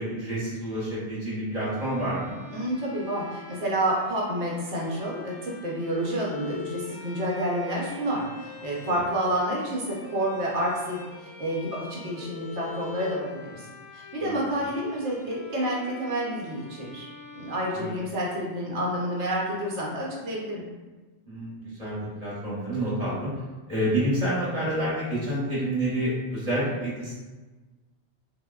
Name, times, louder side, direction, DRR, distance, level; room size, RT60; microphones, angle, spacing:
voice 1, 0.0-2.3 8.9-9.0 14.2-14.3 17.7-18.0 21.3-23.3 23.7-27.2, right 1 dB, 35° right, -9 dB, 1.1 m, -28 dB
Bowed string instrument, 1.5-18.5, left 5 dB, 75° left, 0.9 m, -45 dB
voice 2, 2.5-13.2 13.5-13.6 13.9-17.1 17.3-20.6, right 1 dB, 75° right, -4 dB, 1.0 m, -29 dB
3.4 x 2.1 x 2.3 m, 1.2 s
omnidirectional pair, 1.2 m